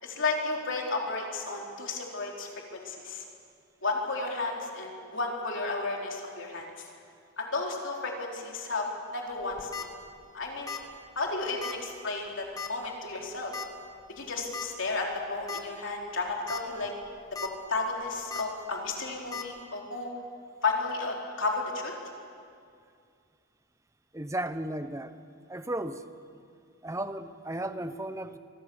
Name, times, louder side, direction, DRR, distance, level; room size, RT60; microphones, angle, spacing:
voice 1, 0.0-3.2 3.8-6.9 7.4-8.9 9.1-9.9 10.3-10.7 11.2-13.5 14.2-16.9 17.7-20.1 20.6-21.9, left 3 dB, 55° left, -1 dB, 4.0 m, -33 dB
sound 1, 9.4-9.9 10.7-10.9 11.2-11.3 11.6-11.8 12.6-12.9 13.5-13.7 14.5-14.7 15.1-15.2 15.5-15.6 16.3-16.6 17.0-17.5 18.3-18.4 19.3-19.4, left 5 dB, 15° left, 1.5 m, -37 dB
voice 2, 24.1-25.2 25.5-26.0 26.8-28.4, right 1 dB, 15° right, 11 dB, 0.8 m, -34 dB
25.5 x 24.0 x 7.2 m, 2.3 s
head